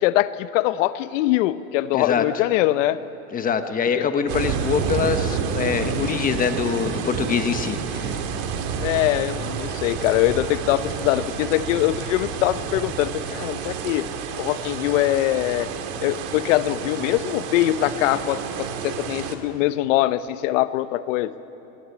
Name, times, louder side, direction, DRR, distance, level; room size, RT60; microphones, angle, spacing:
voice 1, 0.0-3.0 3.9-4.1 8.8-14.1 14.4-15.7 16.0-21.3, left 15 dB, 60° left, 14 dB, 0.9 m, -22 dB
voice 2, 1.9-2.2 3.3-8.2, left 6 dB, 20° left, 8 dB, 1.2 m, -24 dB
sound 1, 4.3-19.4, right 6 dB, 50° right, 2.2 m, -29 dB
21.5 x 20.0 x 8.4 m, 3.0 s
supercardioid pair, 135°, 42 cm